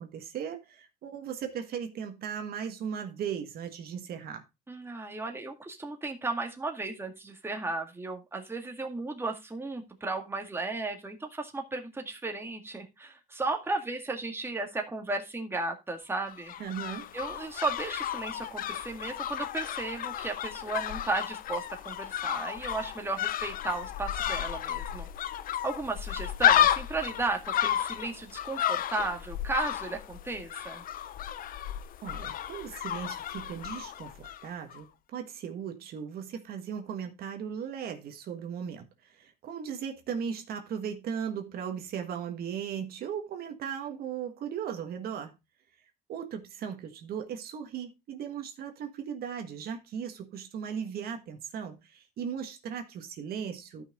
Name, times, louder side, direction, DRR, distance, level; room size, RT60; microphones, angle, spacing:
voice 1, 0.0-4.4 16.6-17.1 32.0-45.4 46.1-53.8, right 7 dB, 65° right, 1.5 m, -37 dB
voice 2, 4.7-16.5 17.1-25.1 25.6-30.8, right 3 dB, 15° right, 1.9 m, -35 dB
sound 1, 16.3-34.5 34.7-34.8, left 11 dB, 55° left, 0.7 m, -32 dB
12.5 x 5.7 x 3.6 m
cardioid pair, 110°, 17 cm